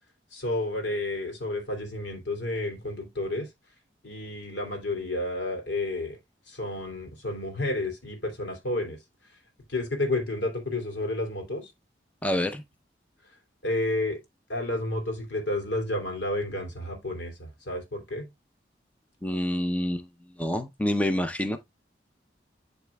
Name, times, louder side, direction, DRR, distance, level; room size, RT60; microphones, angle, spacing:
voice 1, 0.3-3.5 4.0-6.2 6.5-9.0 9.7-11.7 13.6-14.2 14.5-18.3, left 2 dB, 90° left, 2.9 m, -31 dB
voice 2, 12.2-12.6 19.2-20.1 20.4-21.6, left 1 dB, 10° left, 0.6 m, -27 dB
12.0 x 4.1 x 2.3 m
head